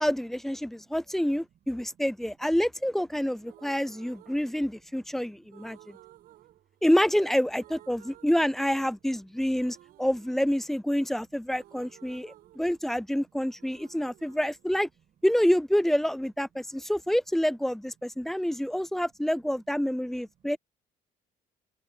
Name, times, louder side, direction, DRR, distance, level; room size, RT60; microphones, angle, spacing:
voice 1, 0.0-6.0 6.8-14.9 15.2-20.6, equal, ahead, 0.4 m, -27 dB
voice 2, 0.6-1.3 2.4-2.5 3.5-3.8 5.0-6.6 7.2-7.3 7.7-8.2 11.6-13.3 13.6-13.7 13.9-14.2 18.1-18.9 20.4-20.5, right 9 dB, 50° right, 5.9 m, -62 dB
sound 1, 3.4-5.1 5.5-7.3 7.5-9.1 9.5-13.2 13.5-15.5, right 14 dB, 75° right, 5.8 m, -56 dB
cardioid pair, 130°, 16 cm